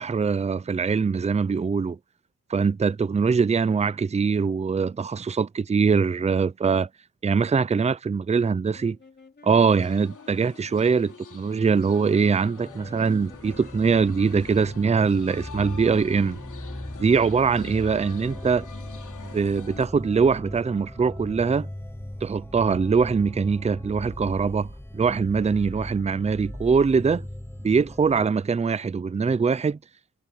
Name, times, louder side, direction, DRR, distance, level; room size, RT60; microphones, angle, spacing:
voice 1, 0.0-2.0 2.5-6.9 7.2-9.0 9.4-16.4 17.0-18.7 19.3-21.7 22.2-27.3 27.6-29.8, right 5 dB, 20° right, 0.5 m, -22 dB
sound 1, 8.7-19.4, left 3 dB, 35° left, 2.8 m, -53 dB
sound 2, 9.6-19.9, left 6 dB, 80° left, 3.6 m, -46 dB
sound 3, 12.6-28.3, left 1 dB, 10° left, 6.5 m, -39 dB
wide cardioid pair, 150°, 31 cm